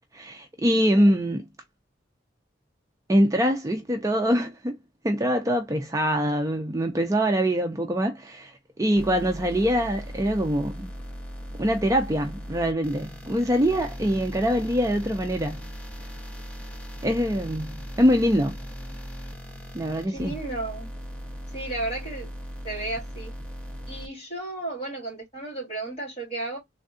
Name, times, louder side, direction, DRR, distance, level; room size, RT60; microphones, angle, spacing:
voice 1, 0.1-1.4 3.1-4.8 5.0-8.5 8.8-10.9 11.6-15.6 17.0-18.6 19.7-20.3, equal, 15° right, 0.4 m, -24 dB
sound 1, 9.0-24.1, equal, 5° left, 0.8 m, -38 dB
voice 2, 20.1-20.9 21.5-22.3 22.6-23.3 23.9-26.6, right 2 dB, 35° left, 1.9 m, -33 dB
3.5 x 2.2 x 2.5 m
head